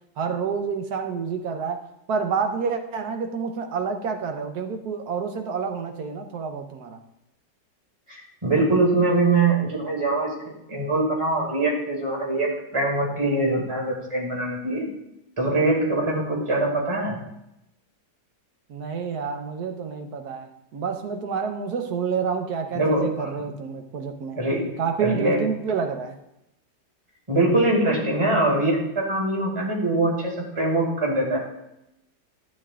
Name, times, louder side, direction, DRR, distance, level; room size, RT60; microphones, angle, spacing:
voice 1, 0.2-7.0 18.7-24.4 24.8-26.2, right 6 dB, 65° right, 6 dB, 1.4 m, -28 dB
voice 2, 8.1-10.3 10.7-14.9 15.4-17.2 22.7-23.3 24.4-25.4 27.3-31.4, right 2 dB, 15° right, -1 dB, 2.3 m, -23 dB
12.0 x 8.9 x 2.4 m, 0.83 s
omnidirectional pair, 1.9 m